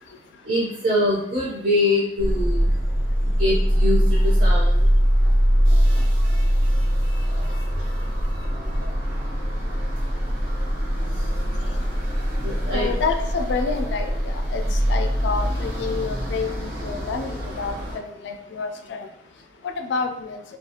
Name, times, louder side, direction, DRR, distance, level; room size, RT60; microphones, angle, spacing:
voice 1, 0.4-2.7 3.4-4.9 12.4-12.9, left 1 dB, 50° right, -5 dB, 0.6 m, -24 dB
sound 1, 2.2-18.0, equal, 85° right, 1.0 m, -22 dB
voice 2, 12.7-19.1 19.6-20.4, left 5 dB, 90° left, 6 dB, 0.3 m, -29 dB
2.3 x 2.3 x 2.8 m, 0.70 s
head